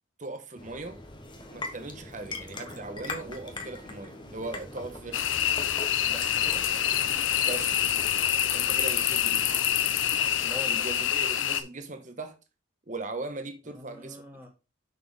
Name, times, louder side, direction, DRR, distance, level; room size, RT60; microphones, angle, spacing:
voice 1, 0.2-1.0 1.5-5.5 7.4-7.9 8.5-9.5 10.7-12.4 12.9-14.5, right 3 dB, 40° right, 1.2 m, -39 dB
sound 1, 0.6-10.5, left 2 dB, 25° left, 1.2 m, -42 dB
sound 2, 5.1-11.6, left 10 dB, 80° left, 0.7 m, -26 dB
voice 2, 6.1-6.7 10.4-10.9 13.6-14.5, equal, 10° right, 2.0 m, -43 dB
7.1 x 6.2 x 3.7 m
head